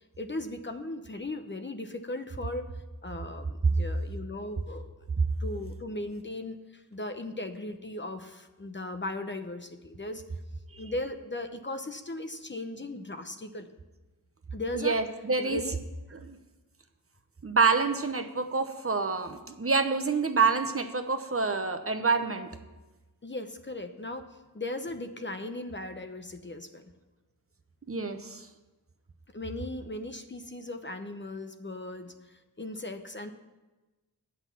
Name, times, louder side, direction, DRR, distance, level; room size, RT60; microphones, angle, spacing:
voice 1, 0.0-2.7 3.0-4.9 5.4-10.2 10.8-13.7 14.5-15.0 15.4-15.8 23.2-24.3 24.5-26.9 29.3-33.3, left 2 dB, 30° left, 7 dB, 0.7 m, -37 dB
voice 2, 14.7-15.6 16.2-16.4 17.4-22.5 27.9-28.5, right 4 dB, 35° right, 8 dB, 0.9 m, -27 dB
8.0 x 6.0 x 7.1 m, 1.1 s
cardioid pair, 45°, 38 cm